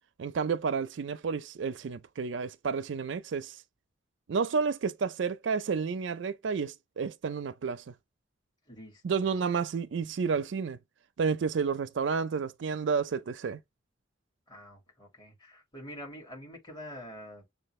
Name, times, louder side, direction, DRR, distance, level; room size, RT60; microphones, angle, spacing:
voice 1, 0.2-3.6 4.3-7.8 9.0-10.8 11.2-13.6, right 5 dB, 80° right, 0.4 m, -31 dB
voice 2, 8.7-9.3 14.5-17.5, equal, 25° left, 2.3 m, -46 dB
6.7 x 2.3 x 3.1 m
head